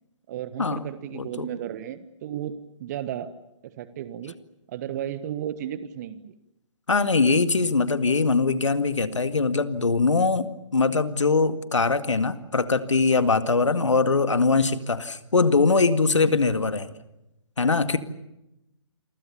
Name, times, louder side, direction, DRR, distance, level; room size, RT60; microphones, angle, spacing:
voice 1, 0.3-3.3 3.6-4.4 4.7-6.3 13.7-13.9, right 10 dB, 35° right, 14 dB, 1.3 m, -34 dB
voice 2, 1.1-1.5 6.9-16.9 17.6-18.0, left 4 dB, 70° left, 11 dB, 2.0 m, -22 dB
29.0 x 23.5 x 7.1 m, 0.89 s
figure-of-eight pair, 135°, 16 cm